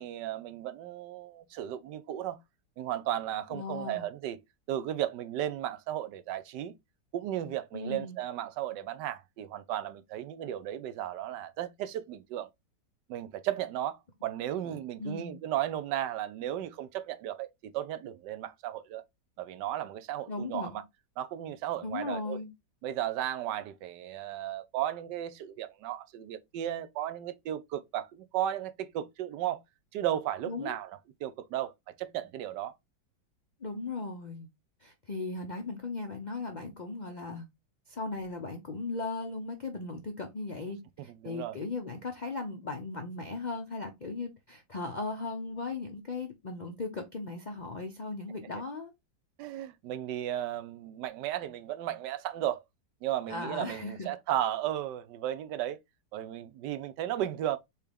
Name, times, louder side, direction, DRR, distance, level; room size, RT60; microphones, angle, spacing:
voice 1, 0.0-2.4 2.8-4.4 4.7-6.7 7.1-12.5 13.1-19.0 19.4-20.8 21.2-22.4 22.8-29.6 29.9-30.9 31.2-31.7 32.0-32.7 41.2-41.6 49.4-52.6 53.0-55.8 56.1-57.6, right 12 dB, 80° right, 1.2 m, -35 dB
voice 2, 3.5-4.1 7.7-8.2 15.0-15.4 20.3-20.8 21.8-22.5 30.5-30.8 33.6-34.5 34.8-37.4 37.9-48.9 53.3-54.1, left 3 dB, 85° left, 0.4 m, -37 dB
4.4 x 3.6 x 3.4 m
omnidirectional pair, 1.9 m